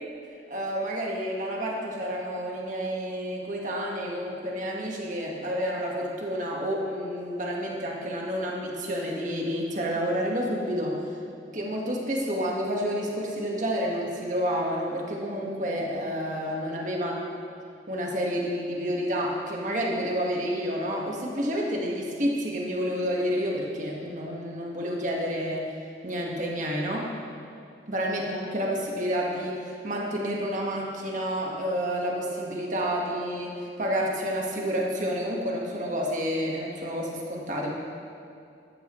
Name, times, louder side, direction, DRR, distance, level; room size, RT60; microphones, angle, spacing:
voice 1, 0.5-11.0 11.5-17.4 17.9-25.7 26.0-27.1 27.9-29.6 29.8-37.7, equal, 45° right, -2 dB, 1.5 m, -29 dB
14.5 x 12.5 x 3.1 m, 2.5 s
head